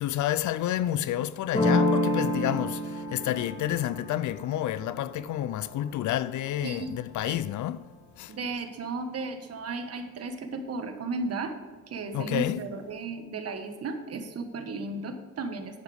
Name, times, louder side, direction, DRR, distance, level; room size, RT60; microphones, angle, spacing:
voice 1, 0.0-7.9 8.2-8.3 12.1-12.6, left 12 dB, 75° left, 0.5 m, -29 dB
sound 1, 1.5-7.1, left 1 dB, 20° left, 2.8 m, -30 dB
voice 2, 6.6-7.4 8.3-11.6 11.9-15.8, right 3 dB, 50° right, 1.5 m, -35 dB
11.0 x 9.3 x 3.5 m
cardioid pair, 105°, 30 cm